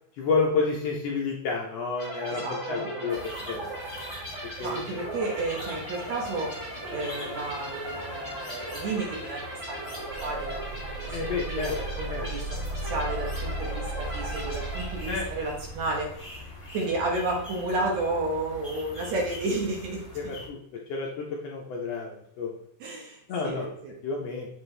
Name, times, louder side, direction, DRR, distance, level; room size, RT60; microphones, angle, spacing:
voice 1, 0.2-3.7 4.6-4.8 11.1-11.8 12.1-12.3 15.0-15.3 20.1-20.6 20.9-22.5 23.3-23.7 24.0-24.5, left 4 dB, 70° left, -2 dB, 1.6 m, -30 dB
sound 1, 2.0-15.5, right 1 dB, 25° right, 1.8 m, -38 dB
voice 2, 2.3-3.5 4.6-6.6 6.9-9.9 10.2-16.3 16.7-20.4 22.8-24.0, right 2 dB, 65° right, -1 dB, 2.2 m, -32 dB
sound 2, 3.1-20.5, left 2 dB, 30° left, 0.5 m, -43 dB
sound 3, 9.9-16.6, right 3 dB, 80° right, 1.6 m, -37 dB
7.1 x 4.4 x 3.2 m, 0.73 s
omnidirectional pair, 3.7 m